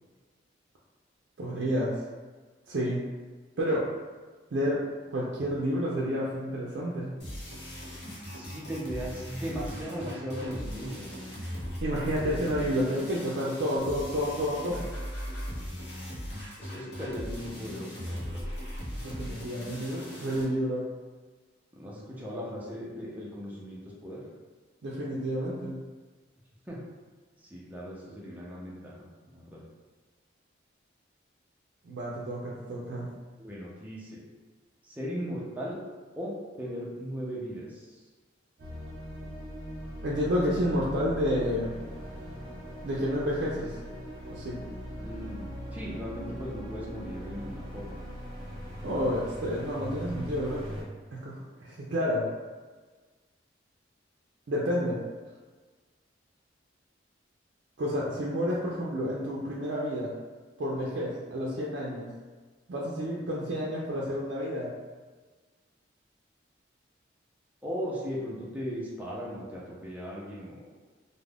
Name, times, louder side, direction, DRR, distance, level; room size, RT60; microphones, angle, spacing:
voice 1, 1.4-2.0 2.7-3.1 3.6-3.9 4.5-4.8 5.1-7.1 11.8-14.9 19.0-20.9 24.8-25.8 31.8-33.1 40.0-41.7 42.8-43.8 44.3-44.6 48.8-50.8 51.1-52.3 54.5-55.0 57.8-60.1 60.6-62.1 62.7-64.7, equal, 70° right, -5 dB, 0.4 m, -30 dB
sound 1, 7.2-20.4, equal, 60° left, 0.8 m, -38 dB
voice 2, 8.3-11.1 16.6-18.5 21.8-24.2 26.7-26.8 27.4-29.6 33.4-34.2 34.8-35.8 36.2-37.9 45.0-48.0 67.6-70.6, equal, 10° right, -6 dB, 0.5 m, -38 dB
sound 2, 38.6-50.8, equal, 55° right, 0.9 m, -40 dB
2.4 x 2.1 x 3.3 m, 1.4 s
head